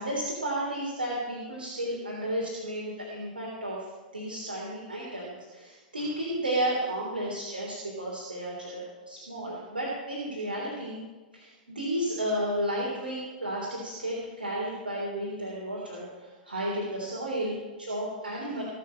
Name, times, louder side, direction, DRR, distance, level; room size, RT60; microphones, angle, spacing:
voice 1, 0.0-11.0 11.3-18.6, right 1 dB, 85° right, -4 dB, 3.5 m, -33 dB
18.5 x 6.9 x 7.5 m, 1.3 s
figure-of-eight pair, 105°, 5 cm